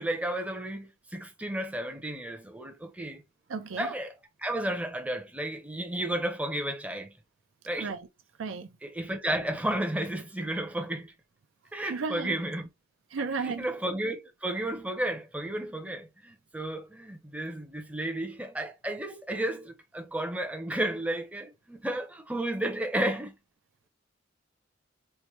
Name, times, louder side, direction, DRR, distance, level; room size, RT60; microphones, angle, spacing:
voice 1, 0.0-3.2 3.8-4.1 4.4-7.1 7.7-7.9 8.8-11.1 11.7-12.7 13.4-23.4, right 1 dB, 5° right, 0.6 m, -32 dB
voice 2, 3.5-3.9 7.8-8.1 8.4-8.7 11.9-12.4 13.1-13.7, right 4 dB, 85° right, 0.5 m, -33 dB
4.4 x 2.1 x 3.0 m
head